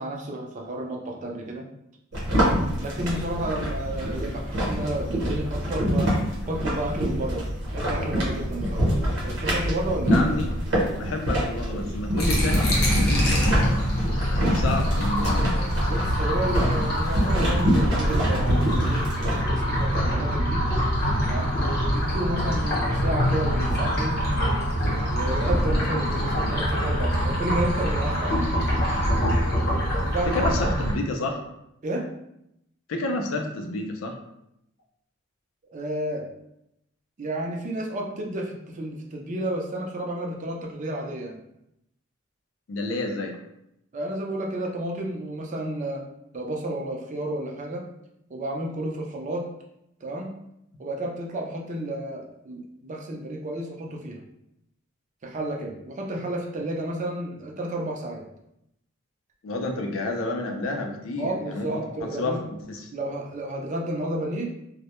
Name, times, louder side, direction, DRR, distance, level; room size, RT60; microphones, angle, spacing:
voice 1, 0.0-1.7 2.3-2.4 2.8-6.1 6.5-8.9 9.2-10.2 15.8-20.6 21.3-21.5 21.9-24.2 25.1-28.4 30.1-30.5 31.8-32.1 35.7-36.3 37.2-41.4 43.9-46.0 46.3-47.9 48.3-49.5 50.0-50.3 50.8-54.2 55.2-58.2 61.2-62.4 62.9-64.5, right 1 dB, 35° right, 0 dB, 0.4 m, -31 dB
sound 1, 2.1-19.4, equal, 55° right, 0.9 m, -26 dB
voice 2, 10.1-10.5 11.0-13.9 14.2-16.1 16.5-16.6 30.3-31.4 32.9-34.2 42.7-43.4 59.4-61.7 62.0-62.4 62.7-62.9, left 2 dB, 70° left, 3 dB, 0.4 m, -30 dB
sound 2, 12.2-30.9, equal, 50° left, 0.7 m, -24 dB
2.1 x 2.0 x 2.9 m, 0.81 s
head